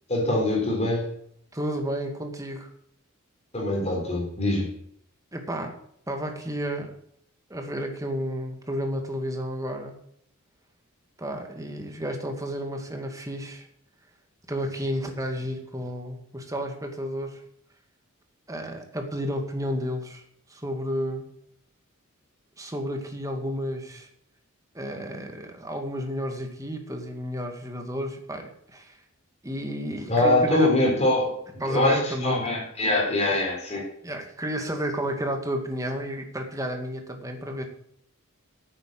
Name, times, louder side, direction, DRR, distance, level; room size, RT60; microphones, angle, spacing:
voice 1, 0.1-1.1 3.5-4.7 30.1-31.4 31.7-33.8, left 2 dB, 30° left, -1 dB, 4.2 m, -23 dB
voice 2, 1.5-2.7 5.3-5.8 6.1-6.9 7.5-9.9 11.2-13.7 14.5-17.4 18.5-20.2 20.5-21.3 22.6-24.1 24.7-28.9 29.4-30.7 31.6-32.4 34.0-37.6, equal, 15° right, 4 dB, 2.1 m, -31 dB
9.3 x 9.1 x 7.7 m, 0.68 s
head